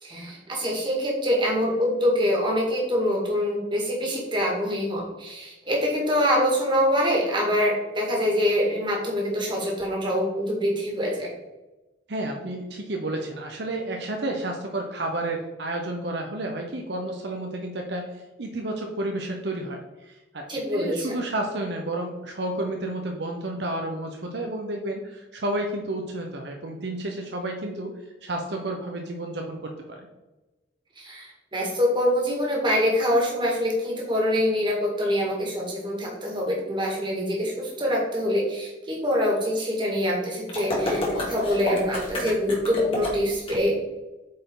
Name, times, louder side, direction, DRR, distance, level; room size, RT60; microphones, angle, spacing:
voice 1, 0.0-11.3 20.5-21.2 31.0-43.8, equal, 25° right, -2 dB, 2.1 m, -25 dB
voice 2, 12.1-18.1 18.4-20.5 20.7-27.9 28.2-30.0, right 1 dB, 70° right, 2 dB, 0.9 m, -31 dB
sound 1, 40.5-43.5, left 1 dB, 30° left, 2.0 m, -29 dB
8.5 x 4.6 x 3.9 m, 1.1 s
head